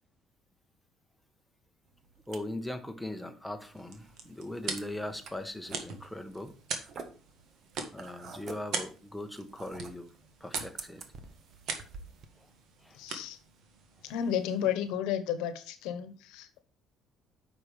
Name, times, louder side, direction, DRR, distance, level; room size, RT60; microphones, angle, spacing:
sound 1, 1.9-12.3, right 5 dB, 45° right, 1.2 m, -48 dB
voice 1, 2.3-6.5 7.9-10.1 10.4-11.0 12.4-12.5 12.8-13.0, left 1 dB, 5° left, 1.1 m, -40 dB
sound 2, 3.6-14.8, right 5 dB, 70° right, 1.7 m, -43 dB
voice 2, 12.9-13.4 14.0-16.6, left 9 dB, 90° left, 1.1 m, -32 dB
9.1 x 5.9 x 3.3 m
cardioid pair, 115°, 0 cm